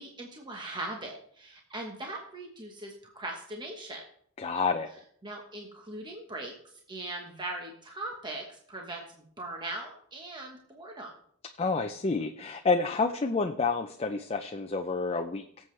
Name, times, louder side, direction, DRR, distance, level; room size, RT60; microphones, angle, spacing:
voice 1, 0.0-4.0 5.2-6.5 6.9-11.1, right 2 dB, 20° right, 1 dB, 1.2 m, -40 dB
voice 2, 4.4-4.9 11.6-15.4, left 4 dB, 30° left, 6 dB, 0.5 m, -29 dB
18.5 x 7.7 x 3.3 m, 0.64 s
head